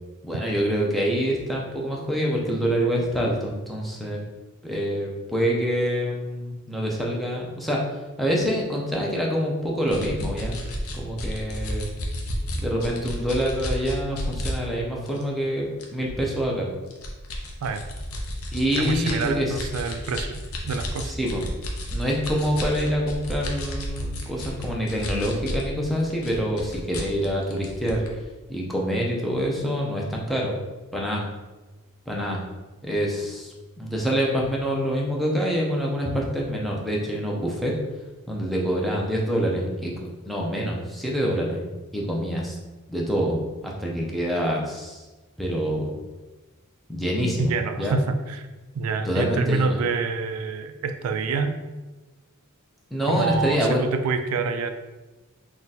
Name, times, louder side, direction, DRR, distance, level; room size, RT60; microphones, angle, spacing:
voice 1, 0.2-4.2 4.6-7.8 8.2-10.6 10.9-11.9 12.5-16.7 18.5-19.5 21.1-21.5 21.9-28.0 28.5-30.6 30.9-31.2 32.1-32.4 32.8-37.7 38.3-42.5 42.9-45.0 45.4-45.9 46.9-48.0 49.0-49.8 52.9-53.9, equal, ahead, -3 dB, 0.6 m, -26 dB
sound 1, 9.9-14.5 15.0-15.2 15.8-16.3 16.9-25.7 26.0-28.1, left 1 dB, 70° left, 0.7 m, -32 dB
voice 2, 18.8-21.1 47.4-48.5 48.8-51.6 53.1-54.7, right 4 dB, 75° right, 8 dB, 0.3 m, -27 dB
3.7 x 2.4 x 4.1 m, 1.2 s
head